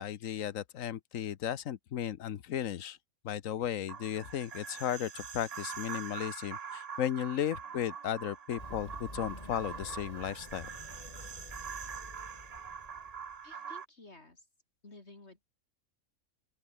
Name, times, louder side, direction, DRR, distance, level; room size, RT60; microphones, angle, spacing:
voice 1, 0.0-3.0 3.2-10.7, left 10 dB, 70° left, 1.3 m, -35 dB
sound 1, 3.9-13.8, right 6 dB, 40° right, 0.6 m, -44 dB
Run, 8.6-13.4, left 1 dB, 25° left, 4.1 m, -49 dB
voice 2, 13.4-14.5 14.8-15.5, left 2 dB, 50° left, 3.6 m, -54 dB
open air
omnidirectional pair, 1.5 m